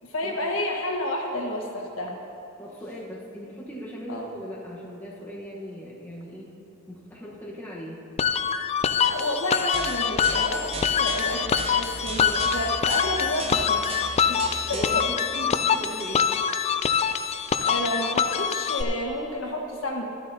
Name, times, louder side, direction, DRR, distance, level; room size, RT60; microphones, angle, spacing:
voice 1, 0.0-2.2 4.1-4.3 9.0-13.8 14.3-14.4 14.7-14.8 17.6-20.0, left 1 dB, 80° left, 0 dB, 1.5 m, -30 dB
voice 2, 2.6-6.5 6.9-8.0 14.7-16.3, equal, 10° left, -5 dB, 1.1 m, -38 dB
sound 1, 8.2-18.8, left 7 dB, 30° left, 0.3 m, -25 dB
sound 2, 9.7-15.1, right 3 dB, 30° right, 0.6 m, -36 dB
13.0 x 12.5 x 2.8 m, 2.8 s
head